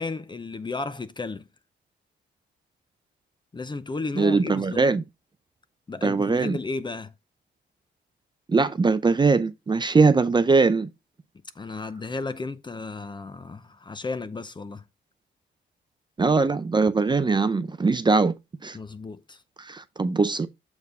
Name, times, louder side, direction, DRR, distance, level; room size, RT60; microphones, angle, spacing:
voice 1, 0.0-1.5 3.5-4.8 5.9-7.1 11.6-14.8 18.7-19.4, left 3 dB, 25° left, 0.6 m, -33 dB
voice 2, 4.2-5.0 6.0-6.6 8.5-10.9 16.2-18.3 18.6-18.8 19.6-20.5, right 4 dB, 25° right, 0.5 m, -21 dB
6.8 x 4.6 x 3.5 m
cardioid pair, 90°, 20 cm